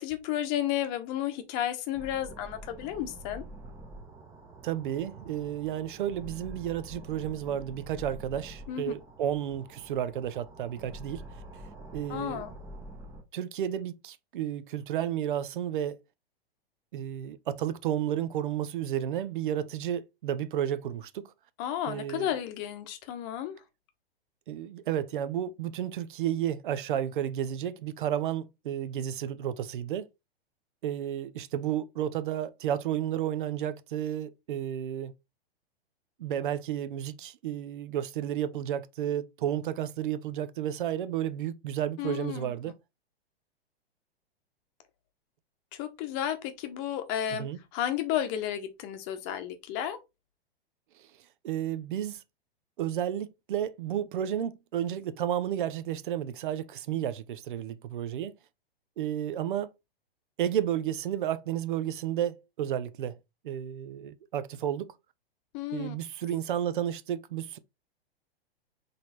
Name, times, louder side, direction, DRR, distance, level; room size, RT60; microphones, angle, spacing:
voice 1, 0.0-3.4 8.7-8.9 12.1-12.5 21.6-23.6 42.0-42.5 45.7-47.5 47.7-50.0 65.5-66.0, left 11 dB, 35° left, 0.9 m, -32 dB
sound 1, 1.9-13.2, right 1 dB, 10° right, 0.9 m, -46 dB
voice 2, 4.6-11.2 11.9-12.4 13.3-16.0 16.9-21.3 21.9-22.3 24.5-30.1 30.8-35.1 36.2-42.7 47.4-47.6 51.4-52.2 52.8-58.4 59.0-59.7 60.4-63.2 63.4-64.9 65.7-67.6, right 10 dB, 55° right, 0.6 m, -32 dB
4.0 x 3.3 x 4.0 m
figure-of-eight pair, 110°, 31 cm